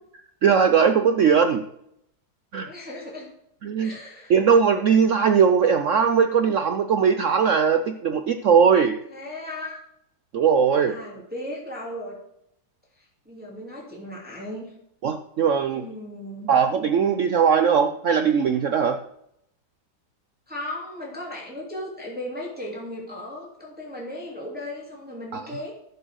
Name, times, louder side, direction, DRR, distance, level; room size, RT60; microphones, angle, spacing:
voice 1, 0.4-1.6 2.5-2.7 3.6-3.9 4.3-9.0 10.3-11.0 15.0-15.8 16.5-19.0 25.3-25.4, right 6 dB, 75° right, 8 dB, 0.7 m, -19 dB
voice 2, 2.6-3.3 3.8-4.3 9.1-9.8 10.9-12.2 13.0-14.7 15.7-16.5 20.5-25.7, left 1 dB, 5° right, -3 dB, 2.8 m, -36 dB
11.5 x 6.3 x 6.4 m, 0.76 s
omnidirectional pair, 2.0 m